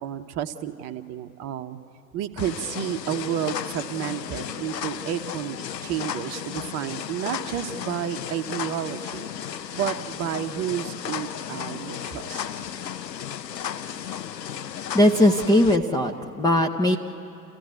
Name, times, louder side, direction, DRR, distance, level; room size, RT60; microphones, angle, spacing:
voice 1, 0.0-1.8 2.1-9.3 9.7-12.4, right 10 dB, 30° right, 8 dB, 0.9 m, -31 dB
sound 1, 2.4-15.8, left 9 dB, 75° left, 0.9 m, -34 dB
voice 2, 14.9-17.0, left 1 dB, 10° left, 2 dB, 0.6 m, -19 dB
30.0 x 15.0 x 9.4 m, 2.8 s
figure-of-eight pair, 90°, 50 cm